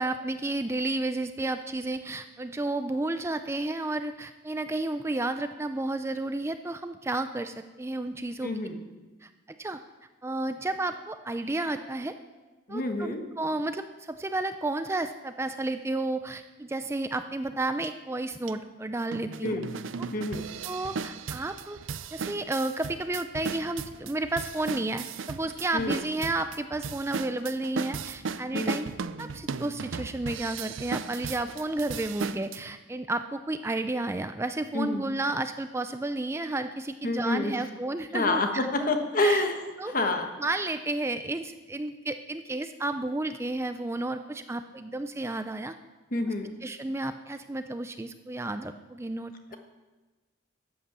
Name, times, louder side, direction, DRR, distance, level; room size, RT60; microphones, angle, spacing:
voice 1, 0.0-8.5 9.2-9.3 9.6-9.8 10.2-12.1 12.7-19.6 20.0-20.1 20.6-21.8 22.1-28.9 29.2-38.9 39.2-39.4 39.8-39.9 40.4-45.7 46.6-49.5, right 2 dB, 15° right, 9 dB, 0.4 m, -32 dB
voice 2, 8.4-8.8 12.7-13.2 19.4-19.7 20.1-20.4 25.7-26.0 28.5-28.8 34.7-35.0 37.0-37.5 38.1-39.5 39.9-40.3 46.1-46.5, left 2 dB, 45° left, 5 dB, 1.3 m, -27 dB
sound 1, 17.8-17.9 18.5-18.6 19.1-32.6, right 5 dB, 85° right, 0.5 m, -36 dB
12.5 x 8.6 x 6.9 m, 1.2 s
head